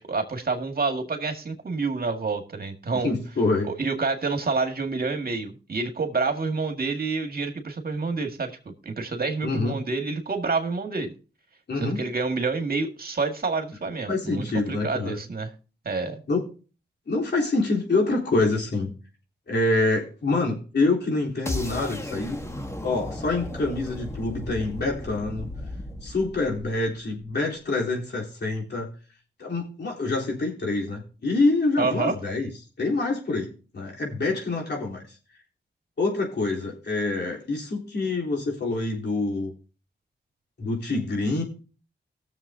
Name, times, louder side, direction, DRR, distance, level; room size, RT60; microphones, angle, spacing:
voice 1, 0.0-3.1 3.6-8.5 8.8-11.1 11.8-15.5 15.9-16.2 31.8-32.1, right 4 dB, 55° right, 5 dB, 2.0 m, -28 dB
voice 2, 3.0-3.7 9.4-9.8 11.7-12.0 14.1-15.2 16.3-16.4 17.1-18.9 19.5-22.4 22.8-25.5 26.0-28.9 29.4-32.5 32.8-35.2 36.0-39.5 40.6-41.4, left 2 dB, 65° left, -2 dB, 3.7 m, -26 dB
sound 1, 21.5-27.4, left 1 dB, 15° left, 1.6 m, -35 dB
19.0 x 7.2 x 2.8 m, 0.36 s
cardioid pair, 50°, 19 cm